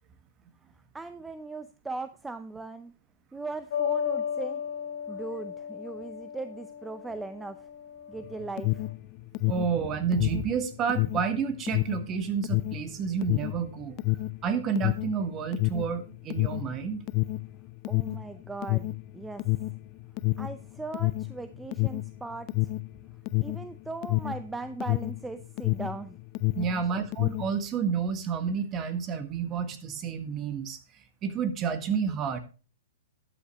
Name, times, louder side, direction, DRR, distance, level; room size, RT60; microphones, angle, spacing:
voice 1, 0.9-2.9 3.3-4.6 5.1-7.7 8.1-8.9 17.9-19.5 20.4-22.7 23.4-26.2 26.7-26.8, right 3 dB, 10° right, 11 dB, 0.6 m, -39 dB
sound 1, 3.7-8.9, left 8 dB, 65° left, 2.8 m, -35 dB
Alarm, 8.2-26.0 26.3-27.6, left 20 dB, 40° left, 0.5 m, -29 dB
voice 2, 9.4-14.0 14.4-17.0 26.6-32.4, right 6 dB, 30° right, 10 dB, 1.7 m, -30 dB
12.5 x 8.8 x 3.0 m, 0.34 s
hypercardioid pair, 135°, 0 cm